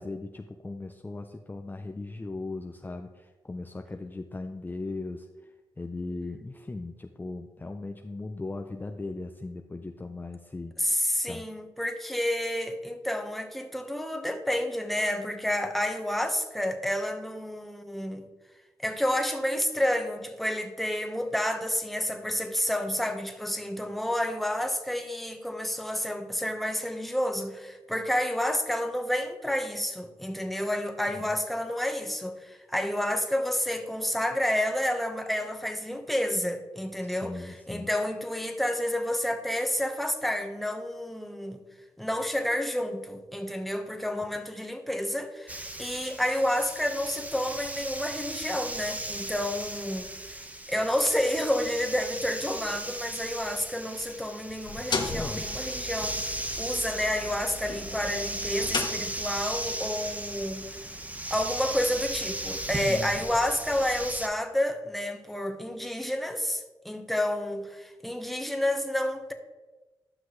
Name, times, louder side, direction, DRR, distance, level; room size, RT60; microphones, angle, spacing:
voice 1, 0.0-3.1 3.5-5.2 5.8-10.7 11.2-11.4 37.2-37.9 55.1-55.5 62.8-63.1, left 2 dB, 20° left, 0.6 m, -37 dB
voice 2, 10.8-18.3 18.8-41.6 42.0-50.1 50.7-60.8 61.3-69.3, left 1 dB, ahead, 1.1 m, -30 dB
sound 1, 45.5-64.3, right 1 dB, 15° right, 0.9 m, -36 dB
sound 2, 54.5-59.6, left 4 dB, 55° left, 1.1 m, -36 dB
12.0 x 5.9 x 3.2 m
cardioid pair, 60°, 9 cm